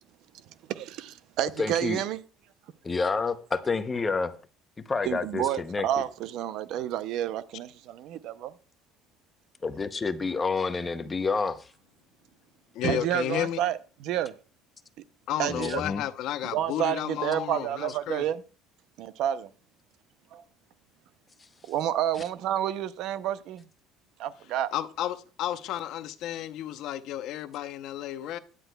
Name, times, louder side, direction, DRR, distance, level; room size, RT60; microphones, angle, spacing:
voice 1, 0.7-2.2 5.1-8.5 12.8-14.3 15.4-15.8 16.5-18.4 19.0-19.5 20.3-20.4 21.7-23.7 24.2-24.7, right 11 dB, 55° right, 0.5 m, -29 dB
voice 2, 1.6-2.0 2.8-4.3 4.9-5.9 9.6-11.7 15.5-16.0 22.2-22.3, left 4 dB, 15° left, 0.6 m, -29 dB
voice 3, 12.7-13.6 15.3-18.2 24.7-28.4, left 11 dB, 50° left, 0.7 m, -32 dB
17.0 x 9.9 x 2.2 m
cardioid pair, 180°, 0 cm